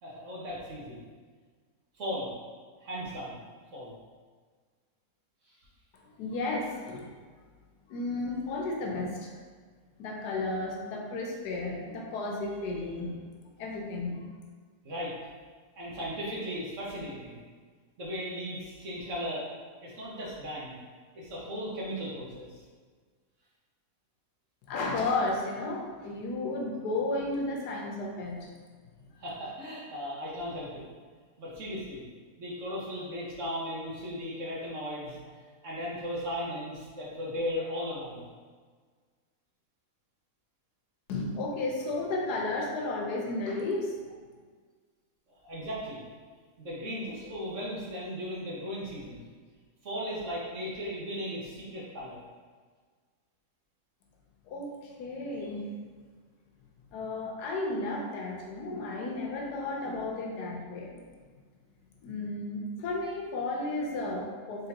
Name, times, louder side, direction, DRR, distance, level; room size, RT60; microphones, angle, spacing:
voice 1, 0.0-1.0 1.9-2.3 2.8-3.4 3.7-3.9 14.8-15.1 15.8-17.4 18.0-19.5 19.8-20.8 21.1-22.5 29.2-30.8 31.4-32.0 32.4-35.2 35.6-38.2 45.4-46.0 46.6-49.2 49.8-52.2, equal, 55° right, -6 dB, 1.3 m, -36 dB
voice 2, 6.0-7.1 7.9-9.3 10.0-13.2 13.6-14.3 24.7-28.5 41.1-43.9 54.5-55.6 56.9-61.0 62.0-64.7, left 2 dB, 85° left, -1 dB, 1.3 m, -33 dB
3.9 x 3.8 x 2.8 m, 1.5 s
omnidirectional pair, 1.7 m